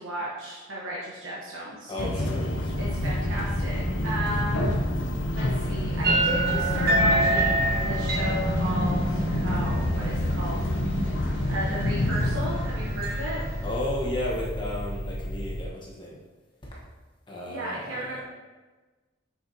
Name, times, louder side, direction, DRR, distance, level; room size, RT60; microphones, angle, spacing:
voice 1, 0.0-2.1 2.8-4.7 5.3-10.7 11.5-13.4 17.5-18.2, right 1 dB, 90° right, -5 dB, 1.0 m, -35 dB
voice 2, 1.9-2.7 13.6-16.2 16.7-16.8 17.3-18.2, left 1 dB, 25° left, -5 dB, 1.3 m, -33 dB
sound 1, 2.0-15.6, left 1 dB, 65° left, 0.7 m, -29 dB
sound 2, 2.6-15.7, equal, 10° left, 1.5 m, -34 dB
sound 3, 6.0-13.8, right 1 dB, 50° right, 1.0 m, -28 dB
6.7 x 5.8 x 2.8 m, 1.3 s
head